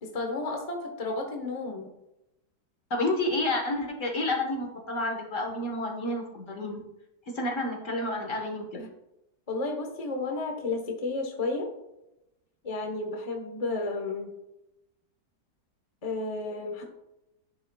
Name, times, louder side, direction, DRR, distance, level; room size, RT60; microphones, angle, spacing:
voice 1, 0.0-1.9 8.7-8.9 9.5-11.7 12.6-14.3 16.0-16.9, left 3 dB, 25° left, 2 dB, 0.9 m, -32 dB
voice 2, 2.9-6.8 7.3-8.7, left 2 dB, 50° left, 2 dB, 1.6 m, -30 dB
10.5 x 6.6 x 2.3 m, 0.89 s
omnidirectional pair, 1.7 m